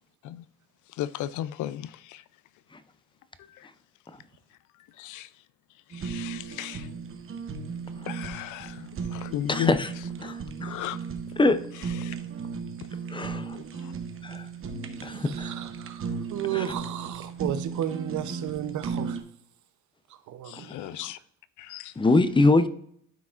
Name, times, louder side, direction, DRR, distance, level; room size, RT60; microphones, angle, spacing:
voice 1, 1.0-2.2 3.5-3.7 5.0-5.3 5.9-6.9 8.1-9.7 10.2-10.3 10.6-11.0 12.0-12.1 13.5-13.9 20.5-21.2 21.6-21.9, left 12 dB, 80° left, 0.5 m, -35 dB
Fire, 5.9-19.2, right 5 dB, 45° right, 0.9 m, -36 dB
voice 2, 9.5-9.9 10.2-10.7 11.4-11.6 13.1-13.6 14.2-14.5 15.0-15.5 16.5-16.6 20.7-20.9 22.0-22.7, left 2 dB, 15° left, 0.5 m, -23 dB
voice 3, 15.1-19.2 20.3-20.7, right 11 dB, 70° right, 0.7 m, -33 dB
12.0 x 4.8 x 2.5 m
cardioid pair, 90°, 30 cm